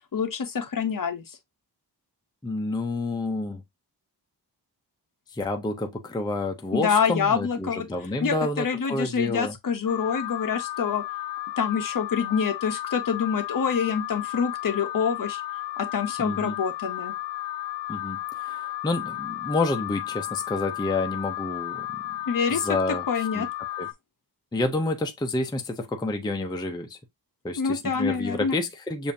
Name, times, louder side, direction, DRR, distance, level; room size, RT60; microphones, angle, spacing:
voice 1, 0.1-1.4 6.7-7.9 8.2-11.0 11.6-15.4 15.8-17.1 22.3-22.6 23.1-23.5 27.6-28.5, left 6 dB, 50° left, 0.8 m, -26 dB
voice 2, 2.4-3.6 5.3-9.6 16.2-16.5 17.9-22.0 22.5-23.1 23.3-23.5 23.8-23.9 24.5-27.0 27.4-29.1, left 2 dB, 10° left, 0.5 m, -29 dB
Alarm, 9.9-23.9, left 14 dB, 85° left, 0.6 m, -33 dB
7.0 x 2.5 x 2.6 m
wide cardioid pair, 165°, 41 cm